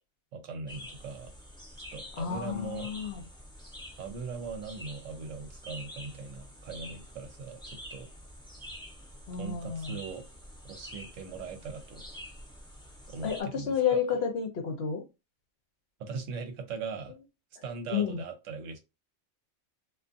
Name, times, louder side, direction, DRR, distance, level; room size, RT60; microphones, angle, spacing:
voice 1, 0.3-1.3 1.9-2.9 4.0-8.1 9.4-10.3 10.6-12.2 13.1-14.0 16.0-17.2 17.6-18.8, right 4 dB, 75° right, 1.0 m, -40 dB
sound 1, 0.7-13.4, equal, 5° left, 0.5 m, -47 dB
voice 2, 2.2-3.2 9.3-10.0 13.2-15.0 17.9-18.2, left 7 dB, 60° left, 0.8 m, -30 dB
2.5 x 2.4 x 2.5 m
omnidirectional pair, 1.4 m